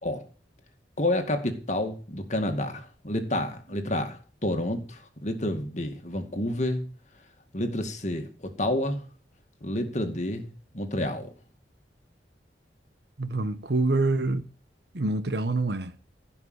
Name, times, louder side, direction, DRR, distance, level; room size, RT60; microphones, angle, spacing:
voice 1, 1.0-6.8 7.5-9.0 9.6-10.5 10.7-11.3, left 1 dB, 40° left, 2.1 m, -29 dB
voice 2, 13.2-14.5 14.9-15.9, right 2 dB, 70° right, 1.1 m, -26 dB
16.0 x 6.0 x 8.0 m
head